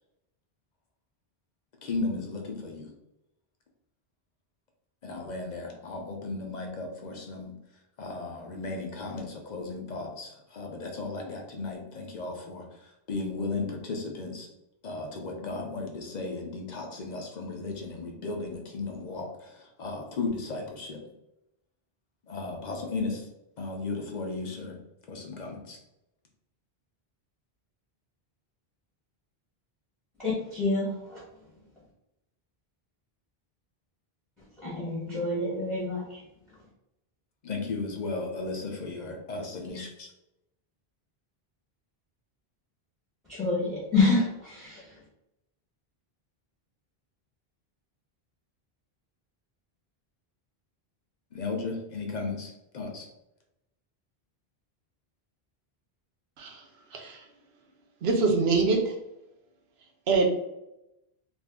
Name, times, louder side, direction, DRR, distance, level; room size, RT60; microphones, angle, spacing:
voice 1, 1.8-2.9 5.0-7.5 8.0-12.7 13.1-14.5 14.8-21.0 22.3-23.2 23.6-24.8 25.1-25.8 37.4-40.1 51.3-53.1, left 3 dB, 50° left, 2 dB, 0.6 m, -35 dB
voice 2, 30.2-31.2 34.6-36.2 43.3-44.9, left 3 dB, ahead, -8 dB, 0.9 m, -27 dB
voice 3, 58.0-58.9 60.1-60.3, right 4 dB, 80° right, 2 dB, 0.9 m, -24 dB
2.5 x 2.5 x 3.5 m, 0.88 s
omnidirectional pair, 1.0 m